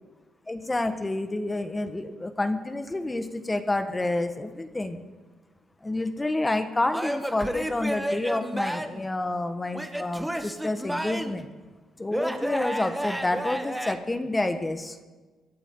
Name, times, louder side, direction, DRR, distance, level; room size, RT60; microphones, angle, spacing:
voice 1, 0.5-5.0 5.8-11.5 12.0-15.0, left 2 dB, 15° left, 8 dB, 1.4 m, -29 dB
Male speech man speaking / Yell / Laughter, 6.9-9.1 9.7-11.5 12.1-14.0, equal, 5° right, 1.3 m, -31 dB
24.0 x 14.5 x 3.9 m, 1.3 s
cardioid pair, 90°, 0 cm